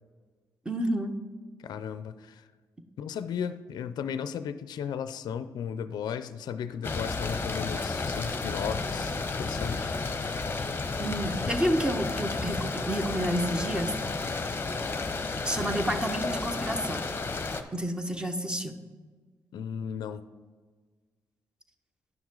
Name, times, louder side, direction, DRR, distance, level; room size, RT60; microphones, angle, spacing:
voice 1, 0.6-1.1 11.0-14.0 15.4-17.0 17.7-18.7, equal, 10° right, 7 dB, 0.9 m, -29 dB
voice 2, 1.6-2.5 3.0-10.0 19.5-20.2, left 7 dB, 75° left, 12 dB, 0.4 m, -35 dB
sound 1, 6.8-17.6, left 3 dB, 30° left, 0.8 m, -32 dB
10.5 x 6.2 x 3.8 m, 1.4 s
cardioid pair, 75°, 7 cm